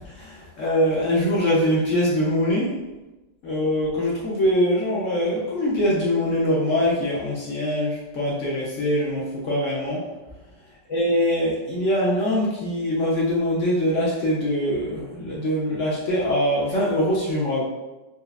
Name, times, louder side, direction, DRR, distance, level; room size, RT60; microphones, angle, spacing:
voice 1, 0.0-2.8 3.4-10.0 10.9-17.7, equal, 60° left, -5 dB, 0.8 m, -23 dB
4.2 x 2.4 x 2.4 m, 1.1 s
omnidirectional pair, 2.0 m